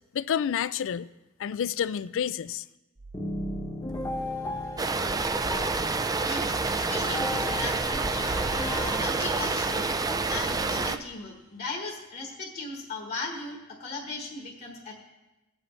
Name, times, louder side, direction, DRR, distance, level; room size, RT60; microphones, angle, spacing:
voice 1, 0.1-1.1 1.4-2.7, left 8 dB, 60° left, 16 dB, 0.4 m, -29 dB
sound 1, 3.0-5.7, right 3 dB, 60° right, 2.6 m, -45 dB
sound 2, 3.1-9.9, left 1 dB, 20° left, 1.1 m, -36 dB
sound 3, 4.8-11.0, right 3 dB, 15° right, 0.4 m, -28 dB
voice 2, 6.2-9.9 10.3-14.9, left 3 dB, 45° left, 0 dB, 1.4 m, -37 dB
18.5 x 8.6 x 3.2 m, 1.1 s
head